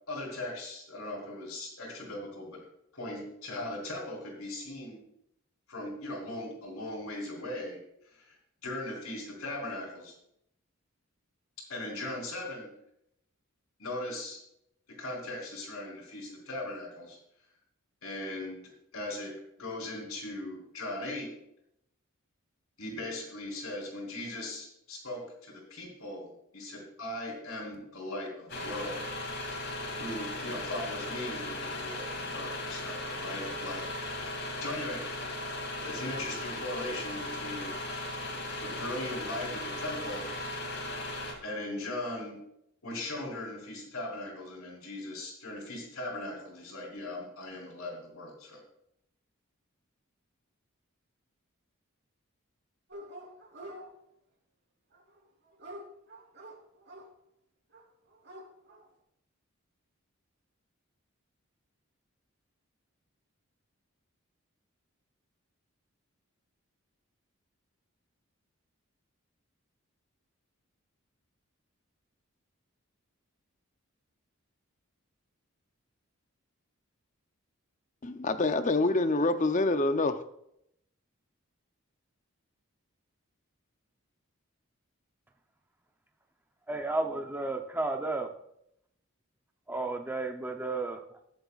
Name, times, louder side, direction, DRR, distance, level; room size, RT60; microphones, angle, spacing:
voice 1, 0.1-2.6 2.9-5.0 5.7-8.4 8.6-10.1 11.7-12.7 13.8-14.4 14.9-17.2 18.0-21.3 22.8-29.4 30.0-33.9 34.6-35.0 35.8-37.8 38.3-40.3 41.4-42.4 42.8-48.6, left 1 dB, 85° left, -1 dB, 4.1 m, -39 dB
sound 1, 28.5-41.3, left 1 dB, 55° left, 2.7 m, -37 dB
Dog, 52.9-53.8 54.9-57.0 57.7-57.8 58.1-58.8, right 1 dB, 50° right, 3.4 m, -46 dB
voice 2, 78.0-80.2, left 2 dB, 35° left, 10 dB, 0.6 m, -26 dB
voice 3, 86.7-88.3 89.7-91.2, right 2 dB, 10° right, 3 dB, 0.7 m, -33 dB
20.5 x 7.7 x 2.5 m, 0.76 s
head